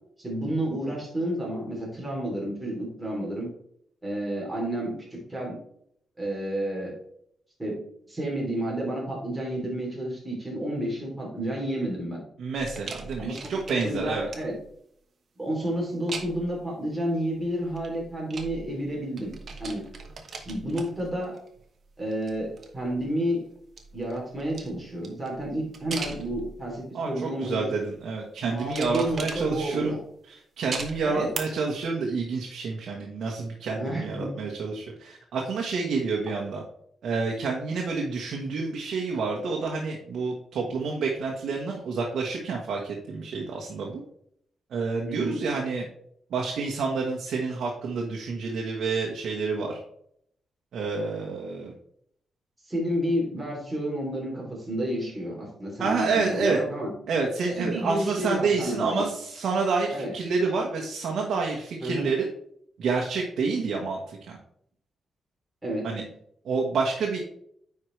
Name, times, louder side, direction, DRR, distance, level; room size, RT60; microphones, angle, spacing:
voice 1, 0.2-3.5 4.0-5.5 6.2-7.0 7.6-7.8 8.1-12.2 13.2-13.5 13.8-14.5 15.4-19.3 19.6-19.9 20.4-21.4 22.0-23.5 23.9-27.7 28.4-30.0 31.0-31.3 33.8-34.3 45.1-45.3 52.7-56.9 57.6-59.0 59.9-60.1 61.8-62.1 65.6-65.9, right 1 dB, 10° right, -3 dB, 3.2 m, -30 dB
voice 2, 12.4-14.3 26.9-30.0 30.2-36.6 37.0-44.0 44.7-45.9 46.3-49.8 50.7-51.7 55.8-56.6 57.1-62.3 62.8-64.4 65.8-66.1 66.4-67.2, right 4 dB, 70° right, 0 dB, 1.2 m, -28 dB
sound 1, 12.5-14.7 16.1-16.6 17.6-18.9 19.2-21.6 22.0-23.1 23.6-26.8 27.4-27.8 28.6-29.9 30.7-31.4 31.8-31.9, right 4 dB, 45° right, 1.1 m, -40 dB
9.6 x 4.8 x 3.2 m, 0.69 s
wide cardioid pair, 135°, 0 cm